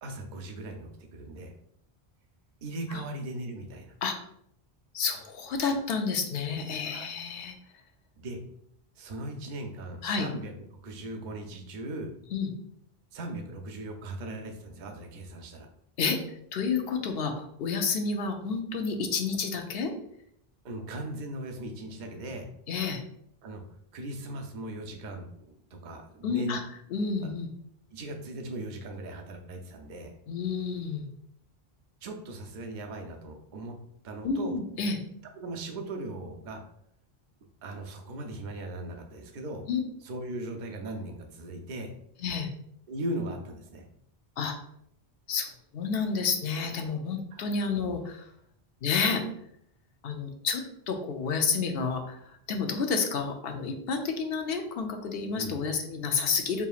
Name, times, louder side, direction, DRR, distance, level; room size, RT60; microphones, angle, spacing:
voice 1, 0.0-1.5 2.6-3.9 6.8-7.1 8.2-8.4 9.0-10.5 10.8-12.1 13.1-15.7 20.6-22.5 23.4-23.6 23.9-26.6 27.9-30.1 32.0-33.8 34.0-34.6 35.4-36.6 37.6-39.6 40.0-41.9 42.9-43.8 47.3-47.4 55.3-55.6, right 1 dB, 55° right, 3 dB, 0.7 m, -38 dB
voice 2, 4.9-7.5 10.0-10.3 12.3-12.5 16.0-16.2 16.5-19.9 22.7-23.0 26.2-26.6 26.9-27.5 30.3-31.1 34.2-35.0 39.7-39.8 42.2-42.5 44.4-44.6 45.3-48.2 48.8-49.2 50.0-52.2 52.5-56.6, left 5 dB, 70° left, 4 dB, 0.8 m, -30 dB
5.0 x 2.8 x 2.3 m, 0.72 s
omnidirectional pair, 1.0 m